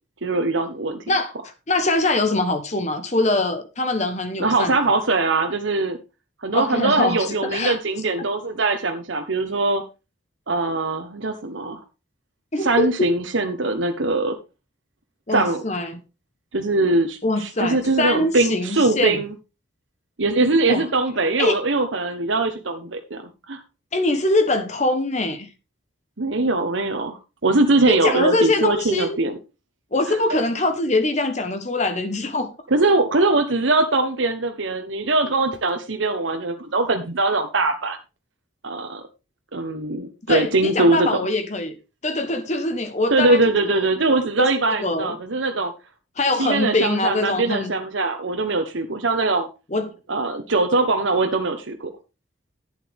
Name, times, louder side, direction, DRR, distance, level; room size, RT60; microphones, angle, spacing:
voice 1, 0.2-1.0 4.4-6.0 6.4-9.8 10.5-11.8 12.6-14.4 15.3-15.6 16.5-19.3 20.2-23.2 23.5-23.6 26.2-29.4 30.1-30.4 32.7-38.0 38.6-39.0 39.5-41.1 43.1-45.7 46.4-49.5 50.1-51.9, right 2 dB, 80° right, 1.2 m, -21 dB
voice 2, 1.1-5.0 6.5-7.8 12.5-13.1 15.3-15.9 17.2-19.2 20.7-20.8 21.4-21.6 23.9-25.5 27.9-29.2 29.9-32.5 40.3-41.8 42.0-43.4 44.4-45.2 46.2-47.7 49.7-49.9, left 2 dB, 35° left, 1.2 m, -23 dB
11.5 x 9.2 x 3.6 m
head